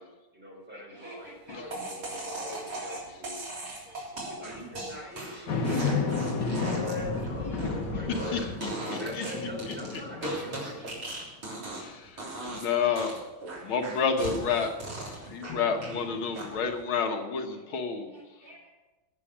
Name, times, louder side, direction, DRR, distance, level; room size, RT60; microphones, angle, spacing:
voice 1, 0.0-1.3 1.5-3.4 4.1-5.7 6.3-7.5 7.8-8.4 8.9-11.0, left 2 dB, 5° right, -3 dB, 4.2 m, -41 dB
voice 2, 0.7-1.9 2.4-4.0 5.7-6.7 7.5-7.8 10.8-10.9 18.1-18.7, right 1 dB, 45° right, -2 dB, 2.9 m, -51 dB
sound 1, 1.7-11.9 12.2-12.7 13.0-16.0 16.3-16.8, right 2 dB, 75° right, 4.4 m, -38 dB
sound 2, 5.5-11.0 11.5-11.6 15.5-16.6, left 4 dB, 55° left, 1.9 m, -33 dB
voice 3, 8.1-9.3 9.7-9.8 11.8-13.2 13.6-18.5, left 6 dB, 75° left, 4 dB, 2.0 m, -31 dB
17.5 x 7.1 x 6.3 m, 1.1 s
omnidirectional pair, 2.3 m